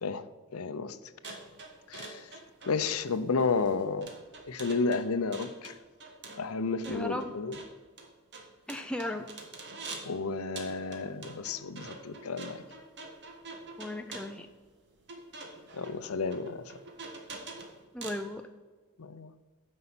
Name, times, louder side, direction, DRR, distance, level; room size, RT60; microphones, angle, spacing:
voice 1, 0.5-1.0 1.3-1.4 1.9-2.3 2.7-4.1 4.5-5.7 6.4-7.5 10.1-12.6 15.7-16.7 19.0-19.3, left 4 dB, 80° left, 0.7 m, -32 dB
sound 1, 1.2-10.2 10.6-18.3, right 3 dB, 55° right, 1.6 m, -46 dB
voice 2, 6.8-7.3 8.7-9.3 13.8-14.5 17.9-18.5, left 1 dB, 5° left, 0.4 m, -36 dB
9.6 x 5.6 x 5.9 m
head